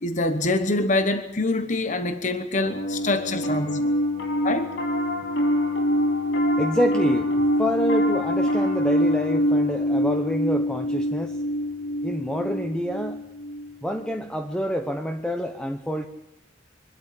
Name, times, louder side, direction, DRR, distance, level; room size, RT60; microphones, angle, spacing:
voice 1, 0.0-3.9 4.4-4.7, left 2 dB, 40° left, 9 dB, 1.1 m, -25 dB
Piano, 2.6-14.1, equal, 60° left, 2.7 m, -24 dB
voice 2, 6.6-7.3 7.6-11.3 12.0-13.2 13.8-16.1, equal, 5° left, 5 dB, 1.0 m, -27 dB
24.5 x 12.5 x 8.5 m, 0.91 s
head